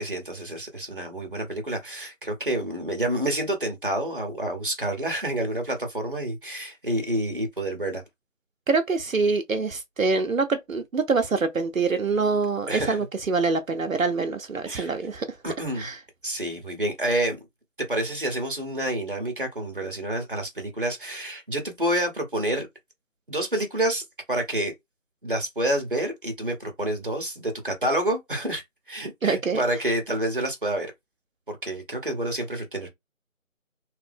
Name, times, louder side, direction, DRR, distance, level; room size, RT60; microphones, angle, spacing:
voice 1, 0.0-8.0 12.7-13.0 14.6-14.9 15.4-15.9 16.2-17.4 17.9-22.7 23.3-24.0 24.3-24.7 25.2-30.9 31.5-32.9, right 1 dB, 40° right, 1.0 m, -28 dB
voice 2, 8.7-15.3 15.8-16.0 29.2-29.6, right 4 dB, 75° right, 0.7 m, -25 dB
3.2 x 2.0 x 3.4 m
figure-of-eight pair, 175°, 40 cm